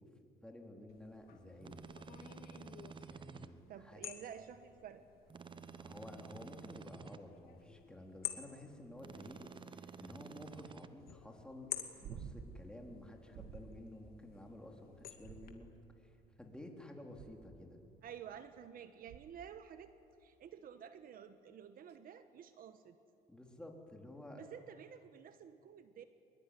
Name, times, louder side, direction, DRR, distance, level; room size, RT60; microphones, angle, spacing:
voice 1, 0.4-1.8 3.0-4.0 5.8-9.4 9.7-15.7 16.0-17.8 23.3-24.4, left 1 dB, 5° left, 1 dB, 3.8 m, -52 dB
sound 1, 0.9-15.5, left 10 dB, 65° left, 2.4 m, -52 dB
sound 2, 1.6-3.5 5.3-7.2 9.0-10.9, right 5 dB, 30° right, 0.9 m, -51 dB
voice 2, 3.7-5.1 18.0-19.9 20.2-23.0 24.4-26.0, right 8 dB, 60° right, 10 dB, 1.2 m, -51 dB
sound 3, 12.0-12.7 13.3-13.9 15.2-15.9 17.1-17.6 19.1-19.5 21.9-22.0, right 7 dB, 80° right, 1.7 m, -50 dB
23.5 x 22.0 x 10.0 m, 2.7 s
cardioid pair, 110°, 17 cm